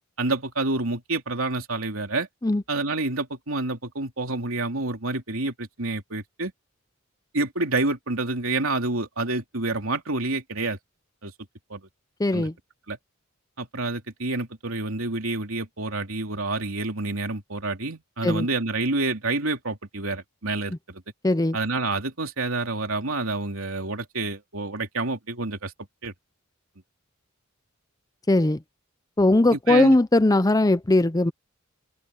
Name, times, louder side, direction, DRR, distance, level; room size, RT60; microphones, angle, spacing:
voice 1, 0.2-2.3 2.7-6.5 7.3-10.8 11.2-11.3 11.7-11.8 12.3-12.5 12.9-13.0 13.6-21.0 21.5-25.7 26.0-26.1 29.5-30.0, right 2 dB, 75° right, 3.3 m, -28 dB
voice 2, 12.2-12.5 18.2-18.5 21.2-21.6 28.3-28.6 29.2-31.3, left 2 dB, 15° left, 0.6 m, -19 dB
open air
head